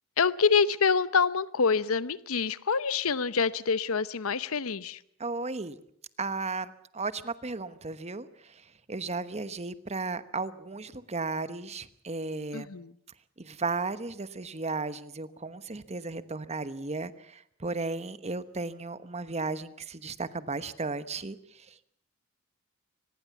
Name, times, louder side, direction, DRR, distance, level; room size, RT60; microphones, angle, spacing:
voice 1, 0.2-5.0 12.5-12.9, left 5 dB, 80° left, 0.8 m, -26 dB
voice 2, 5.2-5.8 6.2-8.3 8.9-12.7 13.4-17.1 17.6-21.4, right 3 dB, 30° right, 1.1 m, -34 dB
24.0 x 20.5 x 7.2 m
head